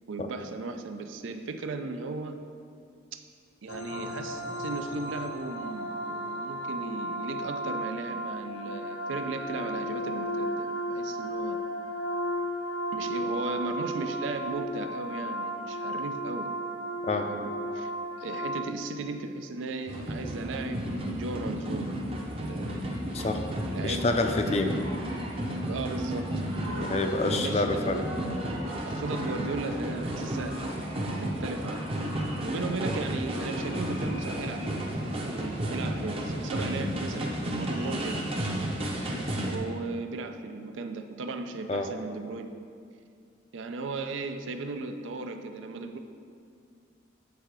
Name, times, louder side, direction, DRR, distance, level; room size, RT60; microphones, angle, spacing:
voice 1, 0.1-2.4 3.1-3.2 3.6-11.6 12.9-16.5 17.1-17.9 18.2-22.8 23.2-23.3 23.7-24.1 25.7-26.3 26.7-27.7 28.8-30.6 31.2-31.9 32.4-38.3 39.5-42.5 43.5-46.0, right 3 dB, 80° right, 7 dB, 0.4 m, -36 dB
sound 1, 3.7-18.7, equal, 75° left, 0.6 m, -34 dB
sound 2, 19.9-39.6, right 1 dB, 30° right, 0.6 m, -32 dB
voice 2, 23.8-24.7 26.9-28.0 41.7-41.9, left 2 dB, 35° left, 5 dB, 0.4 m, -27 dB
8.2 x 3.7 x 4.6 m, 2.2 s
head